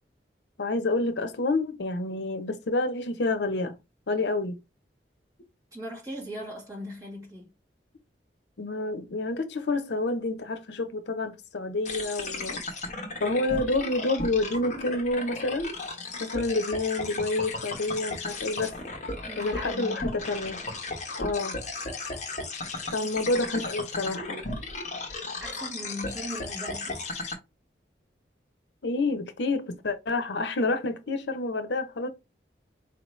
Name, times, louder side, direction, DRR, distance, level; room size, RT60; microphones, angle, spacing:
voice 1, 0.6-3.8 4.1-4.6 8.6-12.6 13.2-15.7 16.2-18.8 19.4-20.6 21.2-21.6 22.9-24.4 28.8-32.1, left 2 dB, 75° left, 0.7 m, -28 dB
voice 2, 5.7-7.5 19.2-20.3 23.0-23.1 25.4-27.0, equal, 20° right, 2.0 m, -39 dB
sound 1, 11.9-27.4, left 3 dB, 45° left, 1.0 m, -35 dB
4.3 x 2.9 x 3.1 m
head